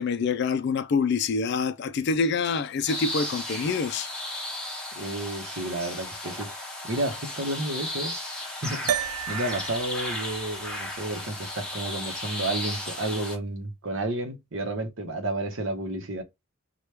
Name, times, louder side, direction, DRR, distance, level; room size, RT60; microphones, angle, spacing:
voice 1, 0.0-4.1, left 5 dB, 50° left, 0.3 m, -26 dB
sound 1, 2.9-13.4, left 1 dB, 5° left, 0.7 m, -35 dB
voice 2, 5.0-8.1 8.4-16.2, right 1 dB, 60° right, 0.9 m, -31 dB
sound 2, 8.9-13.5, right 10 dB, 80° right, 0.3 m, -35 dB
3.0 x 2.2 x 3.2 m
head